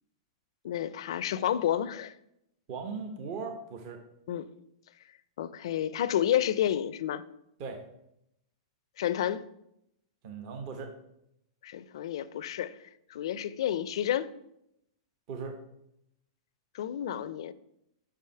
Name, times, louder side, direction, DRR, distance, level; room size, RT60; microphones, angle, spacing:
voice 1, 0.6-2.1 4.3-4.5 5.4-7.2 9.0-9.4 11.6-12.8 13.1-14.3 16.7-17.5, left 11 dB, 70° left, 0.4 m, -30 dB
voice 2, 2.7-4.0 7.6-7.8 10.2-10.9 15.3-15.6, right 5 dB, 45° right, 0.9 m, -38 dB
5.9 x 4.8 x 5.7 m
hypercardioid pair, 145°, 3 cm